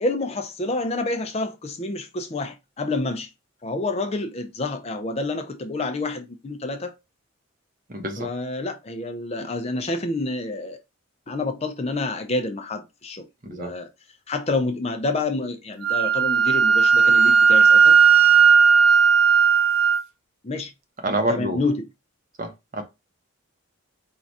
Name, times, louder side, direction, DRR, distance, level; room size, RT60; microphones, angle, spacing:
voice 1, 0.0-3.3 3.6-7.0 8.2-10.8 11.3-13.9 14.3-18.0 20.4-20.7 21.3-21.9, left 2 dB, 30° left, 0.5 m, -28 dB
voice 2, 7.9-8.3 13.4-13.7 21.0-21.6 22.4-22.8, right 1 dB, 40° right, 0.8 m, -27 dB
Wind instrument woodwind instrument, 15.8-20.0, right 6 dB, 80° right, 0.6 m, -15 dB
4.6 x 2.4 x 4.0 m
head